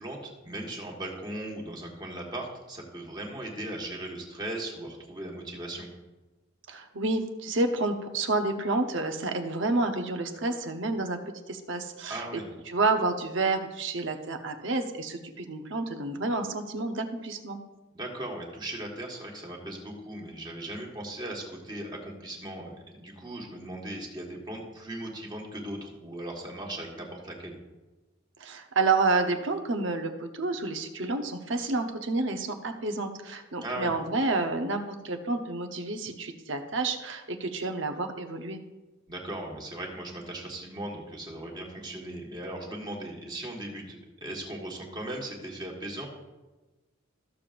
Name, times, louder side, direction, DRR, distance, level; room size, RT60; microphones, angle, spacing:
voice 1, 0.0-5.9 12.1-12.4 17.9-27.6 33.6-33.9 39.1-46.1, right 1 dB, 20° right, -1 dB, 1.6 m, -38 dB
voice 2, 6.7-11.2 11.5-12.3 12.7-17.6 28.4-38.6, right 3 dB, 65° right, 5 dB, 0.9 m, -29 dB
14.0 x 6.9 x 2.5 m, 1.1 s
head